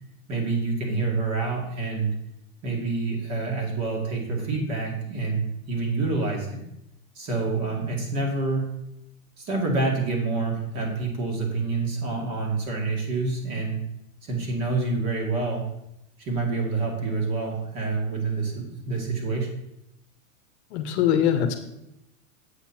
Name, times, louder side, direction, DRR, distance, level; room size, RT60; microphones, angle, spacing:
voice 1, 0.3-2.1 2.6-6.6 7.1-8.7 9.4-13.8 14.2-15.6 16.2-19.5, right 3 dB, 35° right, 0 dB, 2.4 m, -27 dB
voice 2, 20.7-21.5, left 9 dB, 50° left, 7 dB, 0.9 m, -22 dB
8.0 x 5.7 x 4.4 m, 0.83 s
hypercardioid pair, 135°, 43 cm